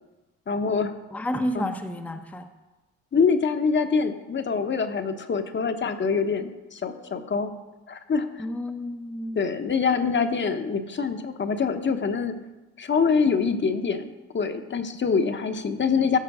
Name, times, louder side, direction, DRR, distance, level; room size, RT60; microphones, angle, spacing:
voice 1, 0.5-0.9 1.5-1.7 3.1-7.5 7.9-8.3 9.3-12.4 12.8-16.2, left 5 dB, 40° left, 8 dB, 1.0 m, -25 dB
voice 2, 1.1-2.5 8.4-9.4, left 1 dB, 5° left, 6 dB, 0.7 m, -30 dB
15.0 x 5.8 x 4.9 m, 1.1 s
cardioid pair, 90°, 30 cm